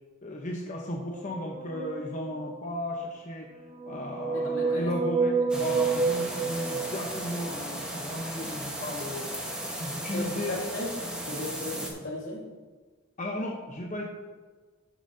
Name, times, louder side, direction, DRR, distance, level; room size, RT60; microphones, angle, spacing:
voice 1, 0.2-9.4 9.8-10.5 13.2-14.1, left 1 dB, 35° left, -1 dB, 0.8 m, -35 dB
sound 1, 1.1-2.7 3.6-7.5, right 4 dB, 25° right, 0.5 m, -30 dB
voice 2, 4.3-4.9 5.5-5.7 10.0-10.9 11.3-12.4, left 1 dB, 75° left, -3 dB, 2.3 m, -35 dB
sound 2, 5.5-11.9, right 1 dB, 5° right, 1.2 m, -36 dB
13.0 x 7.1 x 2.7 m, 1.4 s
head